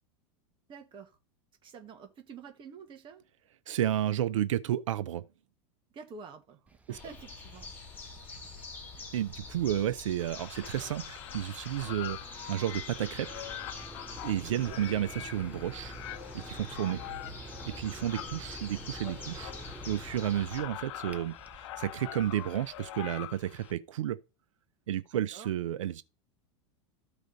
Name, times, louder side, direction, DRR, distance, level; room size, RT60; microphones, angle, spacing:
voice 1, 0.7-1.2 1.6-3.2 5.9-6.6 6.9-7.7 8.9-9.1 14.4-14.8 18.2-18.4 25.1-25.5, right 5 dB, 30° right, 1.6 m, -48 dB
voice 2, 3.7-5.2 6.9-7.0 9.1-13.5 14.2-15.9 16.3-17.0 17.7-19.5 19.9-24.2 24.9-26.0, right 11 dB, 90° right, 0.7 m, -32 dB
sound 1, 6.7-23.7, right 4 dB, 10° right, 0.9 m, -51 dB
sound 2, 6.9-20.6, left 4 dB, 10° left, 4.7 m, -46 dB
sound 3, 10.2-23.7, left 15 dB, 70° left, 0.8 m, -44 dB
14.0 x 5.0 x 4.0 m
supercardioid pair, 120°, 16 cm